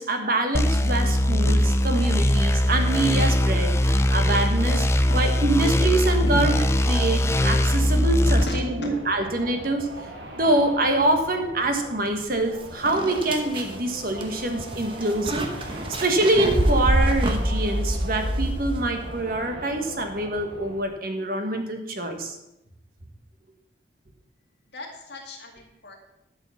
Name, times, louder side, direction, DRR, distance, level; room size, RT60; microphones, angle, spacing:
voice 1, 0.0-4.9 5.1-6.6 6.9-9.9 10.3-22.3, right 2 dB, 50° right, 5 dB, 1.5 m, -25 dB
sound 1, 0.5-8.4, equal, 15° left, 0.4 m, -21 dB
sound 2, 4.9-20.8, right 1 dB, 75° right, 1.8 m, -42 dB
voice 2, 8.4-8.9 24.7-26.0, left 1 dB, 65° left, 1 dB, 2.2 m, -35 dB
sound 3, 12.4-12.5 12.9-19.2, right 1 dB, 30° right, 1.1 m, -26 dB
11.5 x 5.6 x 7.0 m, 0.89 s
head